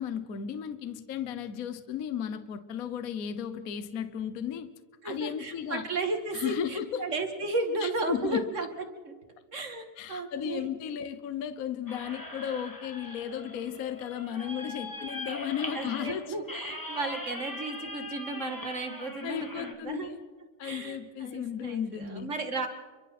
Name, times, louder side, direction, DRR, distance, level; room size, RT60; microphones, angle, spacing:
voice 1, 0.0-4.7 5.0-5.9 6.3-7.0 7.8-8.5 10.0-16.4 19.2-20.2 20.6-22.3, left 9 dB, 55° left, 11 dB, 1.3 m, -35 dB
voice 2, 5.0-8.7 9.0-9.1 9.5-10.6 15.7-20.1 20.6-22.7, right 2 dB, 40° right, 6 dB, 2.3 m, -34 dB
sound 1, 11.9-19.7, left 1 dB, 10° left, 2.1 m, -41 dB
30.0 x 23.5 x 4.3 m, 1.3 s
omnidirectional pair, 1.9 m